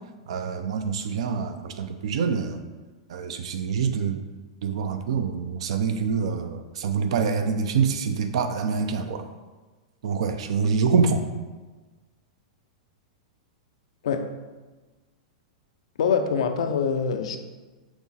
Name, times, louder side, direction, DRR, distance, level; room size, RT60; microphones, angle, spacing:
voice 1, 0.3-2.6 3.1-4.2 4.6-9.3 10.0-11.2, right 5 dB, 70° right, 8 dB, 0.4 m, -26 dB
voice 2, 16.0-17.4, left 6 dB, 75° left, 7 dB, 0.4 m, -24 dB
5.9 x 2.0 x 4.1 m, 1.3 s
hypercardioid pair, 120°, 3 cm